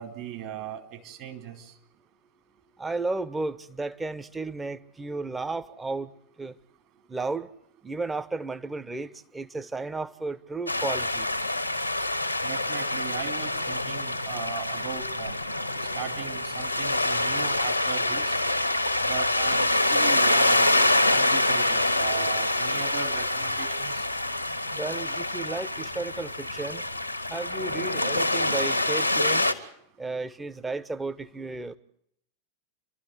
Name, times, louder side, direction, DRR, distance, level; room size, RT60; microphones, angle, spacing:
voice 1, 0.0-1.7 12.4-15.3 15.9-18.4 19.0-24.0, right 8 dB, 45° right, 2.7 m, -38 dB
voice 2, 2.8-6.1 6.4-6.6 7.1-7.5 7.8-11.3 24.7-26.8 27.3-29.5 30.0-31.8, right 3 dB, 10° right, 1.0 m, -33 dB
sound 1, 10.7-29.5, left 2 dB, 90° left, 1.3 m, -26 dB
29.0 x 12.5 x 9.5 m
figure-of-eight pair, 90°, 0 cm